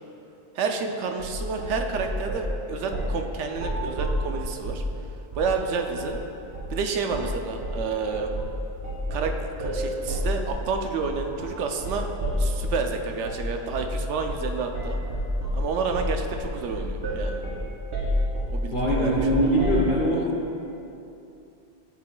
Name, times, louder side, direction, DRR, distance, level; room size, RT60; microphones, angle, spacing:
voice 1, 0.5-4.8 5.4-6.2 6.7-8.3 9.1-12.1 12.4-15.0 15.5-17.4 18.5-19.4 20.1-20.3, right 4 dB, 85° right, 4 dB, 0.9 m, -30 dB
sound 1, 1.2-2.5 2.9-3.2 3.5-4.9 5.3-5.6 5.9-6.2 6.5-6.8 7.1-7.4 7.6-12.8 13.2-13.4 13.7-14.0 14.3-14.5 14.7-19.9, equal, 65° right, 1.7 m, -29 dB
voice 2, 18.7-20.3, equal, 50° left, -4 dB, 0.9 m, -22 dB
11.5 x 4.9 x 2.2 m, 2.8 s
omnidirectional pair, 1.2 m